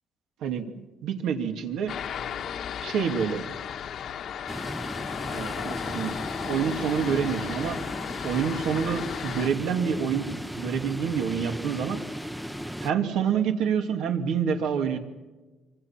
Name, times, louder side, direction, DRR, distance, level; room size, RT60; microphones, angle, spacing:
voice 1, 0.4-1.9 2.8-3.4 5.3-6.2 6.4-7.8 8.2-10.3 10.6-12.0 12.8-15.0, right 7 dB, 85° right, 4 dB, 2.5 m, -27 dB
sound 1, 1.9-9.5, left 8 dB, 50° left, 1.1 m, -35 dB
sound 2, 4.5-12.9, equal, ahead, 0.7 m, -36 dB
26.0 x 25.5 x 5.9 m, 1.2 s
cardioid pair, 175°, 0 cm